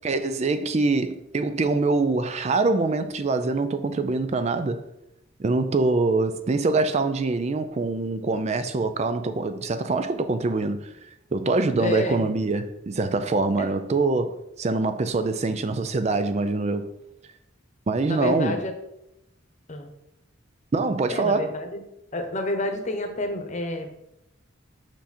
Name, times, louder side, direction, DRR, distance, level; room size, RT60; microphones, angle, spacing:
voice 1, 0.0-4.8 5.4-10.9 11.3-16.9 17.9-18.6 20.7-21.6, right 3 dB, 35° right, 0.4 m, -24 dB
voice 2, 11.8-12.3 13.6-13.7 18.1-18.7 19.7-19.9 21.1-21.8 22.1-23.9, left 1 dB, 40° left, 1.0 m, -29 dB
6.1 x 5.5 x 4.2 m
head